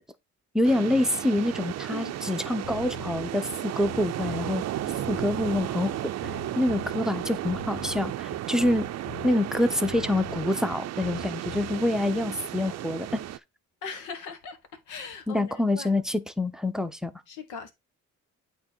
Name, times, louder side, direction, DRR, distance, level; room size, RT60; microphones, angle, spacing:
voice 1, 0.5-4.6 5.1-5.9 6.6-8.9 9.2-13.3 15.3-17.1, left 1 dB, ahead, 0.7 m, -26 dB
sound 1, 0.6-13.4, right 13 dB, 60° right, 0.5 m, -34 dB
sound 2, 2.6-12.2, left 14 dB, 60° left, 0.6 m, -43 dB
voice 2, 13.8-14.6 14.9-16.0 17.3-17.7, left 5 dB, 90° left, 1.6 m, -39 dB
8.7 x 3.1 x 4.5 m
cardioid pair, 90°, 30 cm